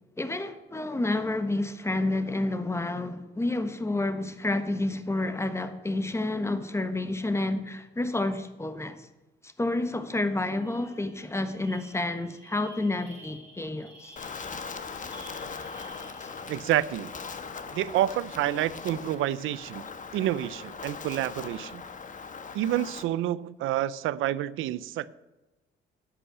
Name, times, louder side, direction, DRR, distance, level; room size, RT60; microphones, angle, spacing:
voice 1, 0.2-9.1 9.4-14.1 16.2-16.3, left 2 dB, 15° left, 1.3 m, -29 dB
sound 1, 9.8-10.0 10.3-16.7, right 1 dB, 10° right, 5.4 m, -52 dB
Wind, 14.2-23.0, left 5 dB, 40° left, 1.2 m, -40 dB
voice 2, 16.5-17.1 17.7-19.9 20.1-21.8 22.5-25.1, right 13 dB, 85° right, 0.6 m, -28 dB
11.0 x 8.3 x 7.9 m
cardioid pair, 90°, 20 cm